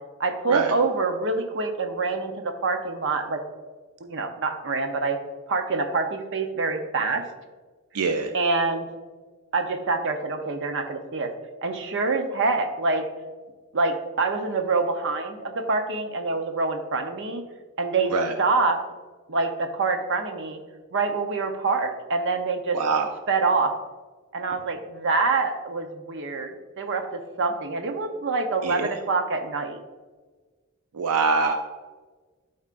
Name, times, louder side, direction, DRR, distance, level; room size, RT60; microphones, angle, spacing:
voice 1, 0.2-3.4 4.0-5.2 5.5-7.2 8.3-8.9 9.5-11.3 11.6-13.0 13.7-17.4 17.8-18.1 18.4-18.8 19.3-20.6 20.9-22.8 23.3-23.7 24.3-29.8, right 3 dB, 60° right, 5 dB, 0.7 m, -26 dB
voice 2, 7.9-8.3 18.1-18.3 22.7-23.1 28.6-28.9 30.9-31.5, right 4 dB, 85° right, 6 dB, 0.5 m, -24 dB
12.0 x 4.3 x 2.5 m, 1.3 s
head